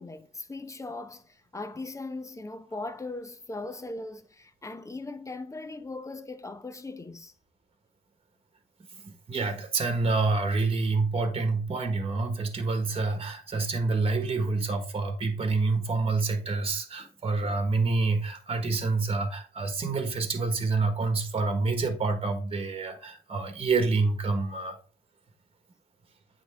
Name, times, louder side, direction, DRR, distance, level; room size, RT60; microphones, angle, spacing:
voice 1, 0.0-7.3 17.0-17.1, left 2 dB, 15° left, 0.7 m, -39 dB
voice 2, 9.0-24.8, right 3 dB, 35° right, 1.4 m, -27 dB
8.7 x 3.7 x 3.4 m
cardioid pair, 115°, 18 cm